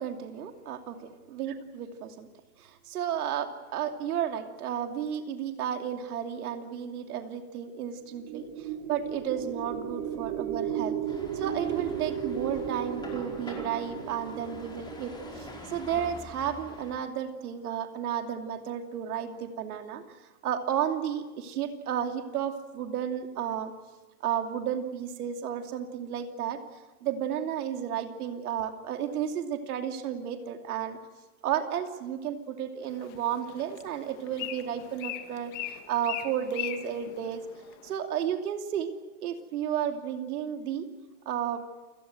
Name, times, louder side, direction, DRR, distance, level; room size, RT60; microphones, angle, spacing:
voice 1, 0.0-2.3 2.6-11.0 11.3-20.0 20.4-23.7 24.2-26.6 27.0-31.0 31.4-37.4 37.8-38.9 39.2-40.9 41.3-41.6, right 9 dB, 75° right, 5 dB, 2.8 m, -33 dB
sound 1, 8.0-16.5, right 8 dB, 45° right, 3.0 m, -35 dB
sound 2, 11.1-17.0, left 2 dB, 10° left, 4.9 m, -46 dB
Bird, 32.8-38.0, left 13 dB, 55° left, 2.3 m, -40 dB
29.0 x 17.5 x 7.8 m, 1.2 s
supercardioid pair, 140°, 45 cm